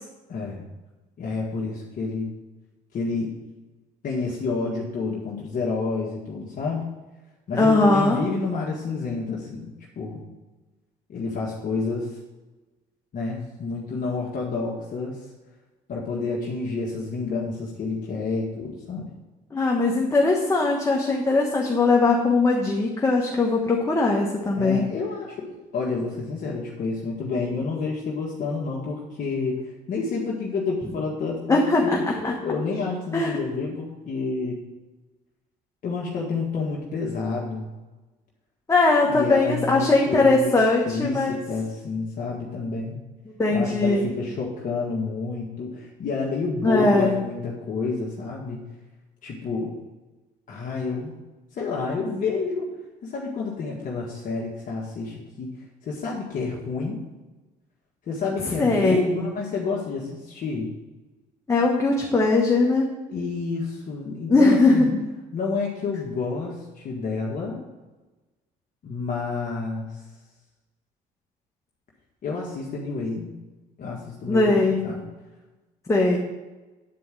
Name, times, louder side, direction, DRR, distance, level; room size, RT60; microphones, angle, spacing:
voice 1, 0.3-0.6 1.2-2.3 2.9-3.3 4.0-6.8 7.5-10.2 11.1-12.2 13.1-15.3 15.9-19.1 24.5-34.6 35.8-37.7 39.0-40.5 40.8-43.0 43.5-48.6 49.2-49.7 50.5-51.1 51.5-52.8 53.0-55.5 55.8-57.0 58.1-60.7 63.1-64.9 65.3-67.6 68.8-70.0 72.2-73.3 73.8-75.0, left 4 dB, 50° left, -3 dB, 1.7 m, -29 dB
voice 2, 7.6-8.2 19.5-24.9 31.5-32.0 32.2-32.3 33.1-33.4 38.7-41.4 43.4-44.1 46.6-47.1 58.4-59.1 61.5-62.9 64.3-64.9 74.3-74.8 75.9-76.2, left 3 dB, 15° left, -1 dB, 1.3 m, -20 dB
9.4 x 4.7 x 7.5 m, 1.1 s
cardioid pair, 110°, 17 cm